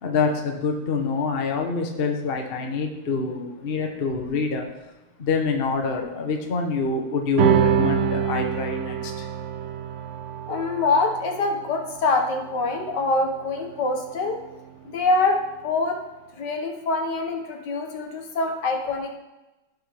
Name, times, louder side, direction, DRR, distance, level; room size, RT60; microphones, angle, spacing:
voice 1, 0.0-4.6 5.2-9.3, left 4 dB, 40° left, 3 dB, 1.0 m, -26 dB
sound 1, 7.4-14.1, right 8 dB, 80° right, 0.6 m, -26 dB
voice 2, 10.5-14.4 14.9-16.0 16.3-19.2, left 3 dB, 70° left, 3 dB, 1.7 m, -24 dB
16.0 x 6.0 x 3.5 m, 1.0 s
omnidirectional pair, 2.0 m